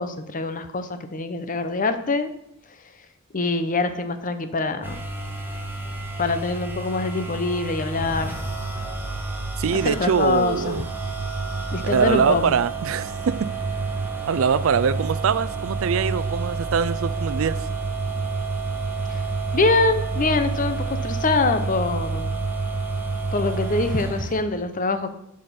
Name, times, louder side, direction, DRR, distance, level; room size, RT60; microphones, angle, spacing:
voice 1, 0.0-2.3 3.3-5.0 6.2-8.4 9.8-10.8 11.7-12.6 19.1-19.2 19.5-22.4 23.3-25.1, left 3 dB, 40° left, 10 dB, 0.8 m, -24 dB
sound 1, 4.8-24.4, right 3 dB, 10° right, 1.3 m, -29 dB
voice 2, 9.6-10.8 11.8-13.5 14.3-17.6, right 6 dB, 75° right, 16 dB, 0.4 m, -23 dB
11.0 x 5.0 x 5.8 m, 0.75 s
head